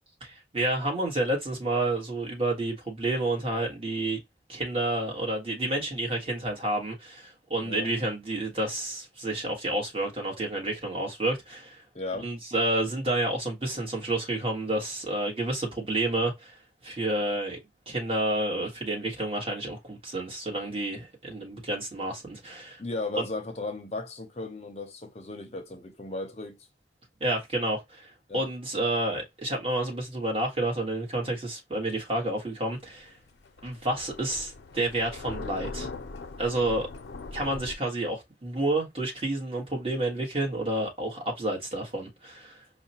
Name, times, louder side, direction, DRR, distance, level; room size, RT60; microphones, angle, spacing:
voice 1, 0.2-4.2 4.5-11.8 12.2-16.5 16.8-17.6 17.9-22.8 23.2-23.3 27.2-33.1 33.6-35.9 36.4-36.9 37.3-42.6, right 1 dB, 35° right, 1.3 m, -30 dB
voice 2, 7.6-7.9 11.9-12.3 22.8-26.6 28.3-28.5, left 2 dB, 35° left, 0.6 m, -35 dB
Thunder, 32.8-37.8, left 3 dB, 80° left, 0.5 m, -40 dB
4.8 x 2.1 x 2.8 m
head